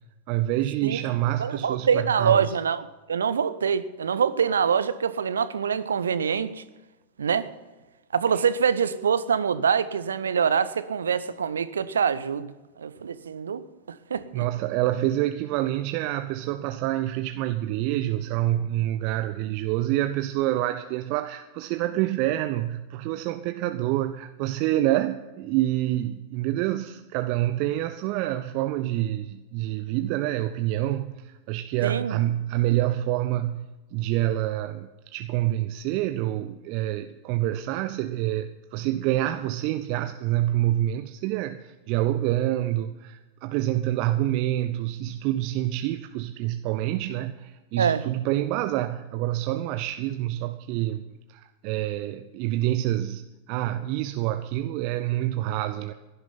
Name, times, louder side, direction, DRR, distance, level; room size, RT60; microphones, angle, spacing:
voice 1, 0.3-2.5 8.3-8.4 14.3-33.6 33.9-55.9, right 14 dB, 45° right, 0.7 m, -27 dB
voice 2, 1.4-6.6 7.2-7.5 8.1-14.5 31.8-32.2 47.8-48.0, right 7 dB, 70° right, 0.8 m, -25 dB
17.0 x 11.5 x 5.7 m
figure-of-eight pair, 90°, 0 cm